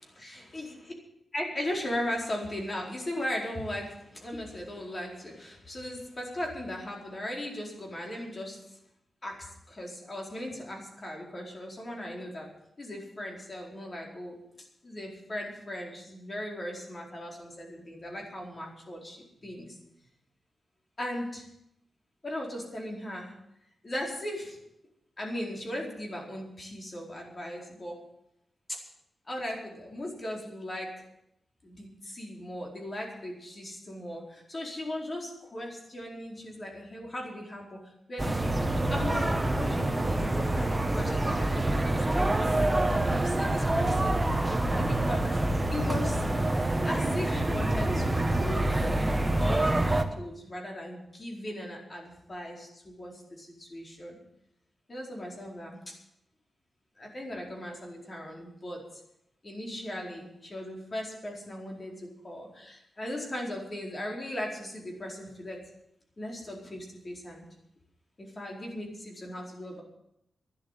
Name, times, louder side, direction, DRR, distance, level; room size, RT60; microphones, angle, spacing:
voice 1, 0.2-0.8 1.3-8.8 9.2-12.5 12.8-19.8 21.0-21.5 22.2-23.3 23.8-24.6 25.2-28.0 28.7-28.8 29.2-31.0 31.6-45.3 45.7-46.2 46.8-49.0 49.4-54.2 54.9-55.8 57.0-59.0 59.4-65.7 66.2-67.4 68.2-69.8, left 1 dB, 30° left, 0 dB, 4.6 m, -38 dB
sound 1, 38.2-50.0, right 1 dB, 15° right, 1.3 m, -26 dB
12.5 x 10.5 x 9.2 m, 0.80 s
wide cardioid pair, 115°, 0 cm